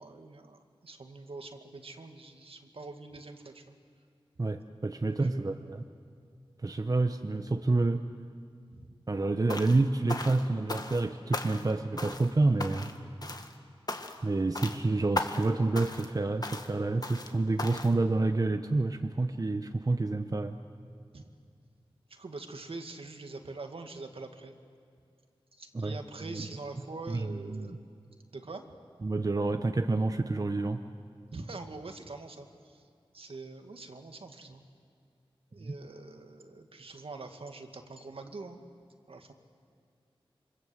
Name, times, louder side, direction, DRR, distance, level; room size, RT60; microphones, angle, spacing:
voice 1, 0.0-3.8 5.1-5.5 8.7-8.9 21.1-21.3 22.1-24.5 25.6-27.8 28.3-28.6 31.3-32.8 33.1-34.6 35.5-38.6 39.1-39.3, right 3 dB, 70° right, 5 dB, 2.1 m, -44 dB
voice 2, 4.4-5.8 6.6-8.0 9.1-12.9 14.2-20.6 25.7-25.9 26.3-26.5 27.1-27.8 29.0-30.8 35.6-35.7, right 2 dB, 40° right, 7 dB, 1.0 m, -28 dB
sound 1, 9.5-9.8 10.1-11.1 11.3-11.7 12.0-12.3 12.6-13.0 13.2-13.5 13.9-14.3 14.6-14.8 15.2-15.5 15.8-16.1 16.4-16.7 17.0-17.3 17.6-17.9, left 2 dB, 40° left, 1.8 m, -37 dB
28.0 x 25.0 x 8.0 m, 2.2 s
wide cardioid pair, 70°, 10 cm